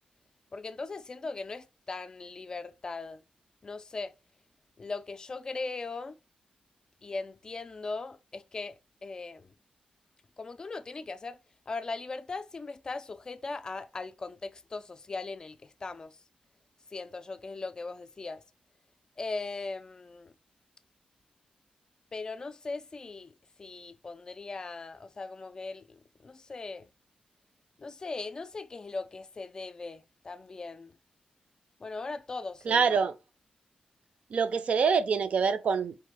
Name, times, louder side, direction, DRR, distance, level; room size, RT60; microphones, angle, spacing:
voice 1, 0.5-3.2 3.6-4.1 4.8-6.2 7.0-9.5 10.4-11.4 11.7-16.2 16.9-18.4 19.2-20.3 22.1-26.9 27.8-30.9 31.8-32.9, left 3 dB, 30° left, 0.3 m, -39 dB
voice 2, 32.7-33.1 34.3-36.0, right 5 dB, 55° right, 0.4 m, -25 dB
4.6 x 2.4 x 3.3 m
wide cardioid pair, 155°, 3 cm